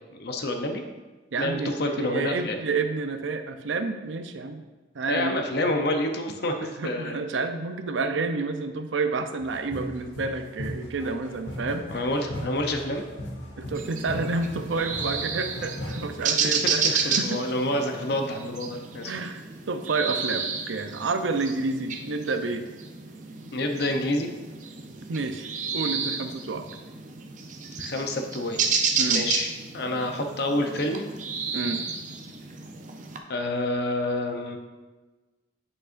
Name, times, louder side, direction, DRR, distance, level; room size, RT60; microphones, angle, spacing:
voice 1, 0.1-0.8 1.4-2.6 5.1-7.3 11.9-13.0 16.8-19.1 23.5-24.3 27.8-28.6 29.1-29.5 29.7-31.1 33.3-34.6, left 1 dB, 60° left, 5 dB, 0.7 m, -28 dB
voice 2, 1.3-4.6 4.9-5.5 6.3-12.1 13.6-17.4 19.0-22.6 25.1-25.5 25.7-26.7 29.0-29.3 31.5-31.8, right 3 dB, 90° right, 7 dB, 0.6 m, -30 dB
sound 1, 9.4-16.3, equal, 85° left, 1.6 m, -38 dB
sound 2, 13.7-33.2, right 5 dB, 45° right, 0.6 m, -31 dB
7.8 x 6.3 x 2.5 m, 1.3 s
head